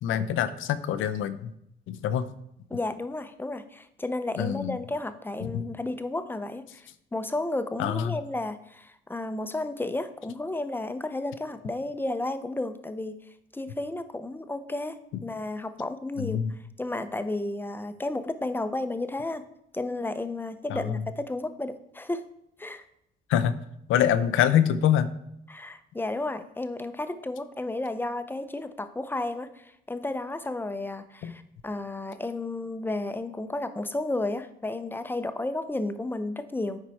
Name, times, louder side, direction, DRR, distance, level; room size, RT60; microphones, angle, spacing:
voice 1, 0.0-1.5 1.9-2.3 4.4-4.8 5.4-5.6 7.8-8.2 16.2-16.5 20.7-21.0 23.3-23.6 23.9-25.1 31.2-31.3, left 9 dB, 85° left, 12 dB, 0.6 m, -25 dB
voice 2, 2.7-13.2 13.5-16.4 16.8-19.4 19.7-22.2 22.6-22.8 25.5-36.8, left 2 dB, 10° left, 10 dB, 0.6 m, -32 dB
9.4 x 4.5 x 4.2 m, 0.76 s
cardioid pair, 90°, 20 cm